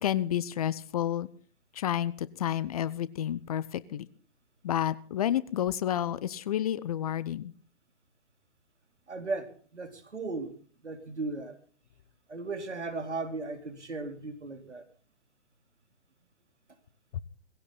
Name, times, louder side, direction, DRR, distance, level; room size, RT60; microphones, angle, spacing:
voice 1, 0.0-1.3 1.7-4.1 4.6-7.5 17.1-17.2, left 11 dB, 30° left, 0.8 m, -30 dB
voice 2, 9.1-10.5 10.8-11.5 12.3-14.9, right 3 dB, 70° right, 3.8 m, -36 dB
20.0 x 16.0 x 4.0 m
figure-of-eight pair, 125°, 36 cm